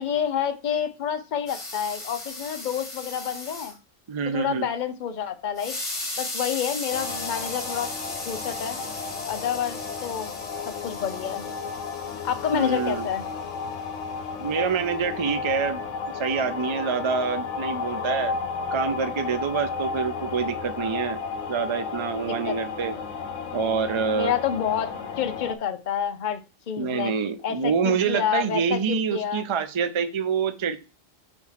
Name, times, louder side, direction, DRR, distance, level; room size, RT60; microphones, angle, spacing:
voice 1, 0.0-3.8 4.3-5.7 6.2-7.9 8.3-8.8 9.3-10.3 10.7-11.4 12.2-13.2 22.2-22.6 24.1-24.9 25.2-26.4 26.7-27.1 27.4-29.4, left 8 dB, 45° left, 8 dB, 0.7 m, -28 dB
sound 1, 1.5-3.7 5.6-13.9, left 2 dB, 25° left, 1.5 m, -37 dB
voice 2, 4.1-4.7 12.5-13.1 14.4-15.8 16.2-18.4 18.7-21.2 21.5-22.9 23.5-24.3 26.8-30.8, right 6 dB, 45° right, 10 dB, 0.4 m, -26 dB
sound 2, 6.9-25.6, left 5 dB, 70° left, 1.1 m, -33 dB
4.6 x 4.4 x 5.6 m, 0.32 s
omnidirectional pair, 1.4 m